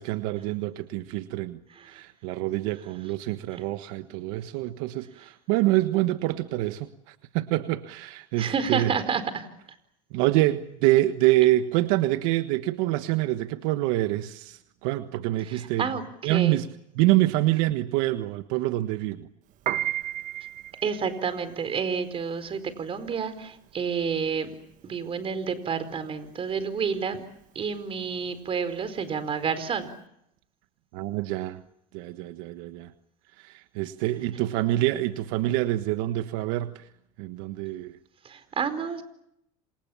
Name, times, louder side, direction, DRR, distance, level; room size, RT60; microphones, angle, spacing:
voice 1, 0.0-8.9 10.1-15.9 16.2-16.7 17.0-19.3 30.9-31.6 31.9-32.9 33.4-36.9 37.2-38.0, right 16 dB, 75° right, 10 dB, 1.5 m, -26 dB
voice 2, 1.7-2.0 3.5-3.6 8.4-9.5 15.5-16.6 20.8-24.5 24.8-27.2 27.5-29.9 38.2-39.0, right 6 dB, 30° right, 12 dB, 4.6 m, -30 dB
Piano, 19.5-29.9, right 12 dB, 50° right, 1.4 m, -36 dB
29.0 x 27.0 x 7.2 m, 0.78 s
supercardioid pair, 120°, 17 cm